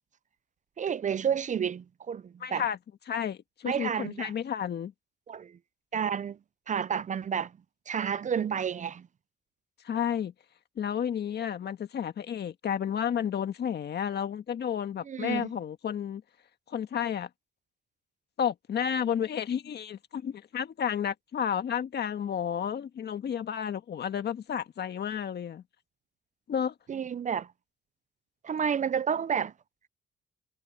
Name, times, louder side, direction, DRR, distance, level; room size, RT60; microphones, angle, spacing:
voice 1, 0.8-2.6 3.7-4.3 5.3-5.6 5.9-6.4 6.7-7.5 7.9-9.1 15.1-15.5 26.9-27.5 28.4-29.5, right 7 dB, 40° right, 0.5 m, -30 dB
voice 2, 2.4-2.8 3.1-4.9 9.8-10.3 10.8-16.2 16.7-17.3 18.4-25.6 26.5-26.7, left 8 dB, 55° left, 1.7 m, -31 dB
cardioid pair, 90°, 20 cm